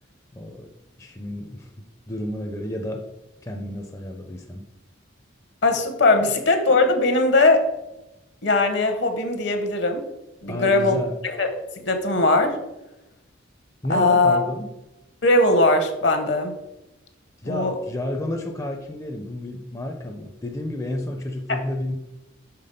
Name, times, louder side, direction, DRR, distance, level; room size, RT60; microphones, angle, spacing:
voice 1, 0.3-0.7 1.0-3.0 3.4-4.6 6.2-6.3 10.5-11.2 13.8-14.7 17.4-22.0, left 1 dB, 15° left, 2 dB, 0.4 m, -31 dB
voice 2, 5.6-7.6 8.4-10.0 10.4-11.0 11.2-11.5 11.8-12.6 13.9-14.4 15.2-16.5 17.5-17.7 21.5-21.6, left 2 dB, 60° left, 6 dB, 0.9 m, -19 dB
5.8 x 3.5 x 5.2 m, 0.95 s
head